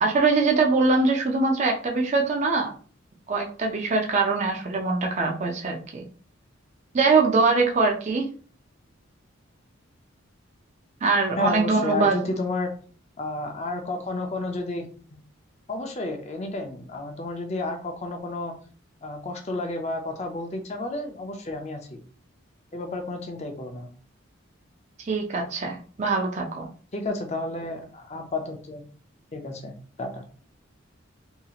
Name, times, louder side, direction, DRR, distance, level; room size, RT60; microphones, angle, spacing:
voice 1, 0.0-2.7 3.3-6.1 6.9-8.3 11.0-12.2 25.0-26.7, right 3 dB, 35° right, 1 dB, 0.4 m, -23 dB
voice 2, 11.4-12.7 13.2-15.2 15.7-18.5 19.0-22.0 22.7-23.9 26.9-28.8 29.3-29.7 30.0-30.2, left 2 dB, 30° left, 4 dB, 0.5 m, -31 dB
2.8 x 2.8 x 2.4 m, 0.42 s
head